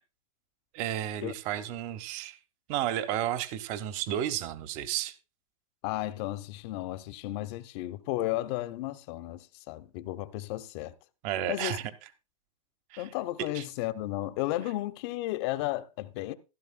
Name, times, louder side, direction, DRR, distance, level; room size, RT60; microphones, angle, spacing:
voice 1, 0.7-2.4 2.7-5.1 11.2-11.8 12.9-13.1 13.5-13.6, right 11 dB, 40° right, 1.1 m, -32 dB
voice 2, 5.8-10.9 11.5-11.8 13.0-16.3, left 16 dB, 50° left, 1.0 m, -34 dB
15.5 x 12.0 x 2.2 m
hypercardioid pair, 135°, 19 cm